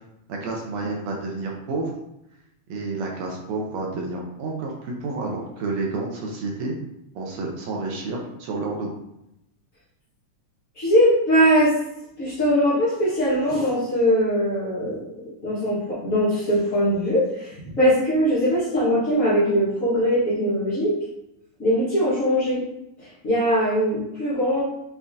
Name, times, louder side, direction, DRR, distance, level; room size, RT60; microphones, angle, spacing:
voice 1, 0.3-1.9 2.7-6.8 7.1-8.9, right 3 dB, 75° right, -1 dB, 1.7 m, -30 dB
voice 2, 10.8-11.7 12.2-15.0 15.4-21.0 21.6-22.6 23.2-24.6, equal, 90° left, -9 dB, 0.7 m, -21 dB
7.0 x 2.5 x 2.7 m, 0.83 s
omnidirectional pair, 3.6 m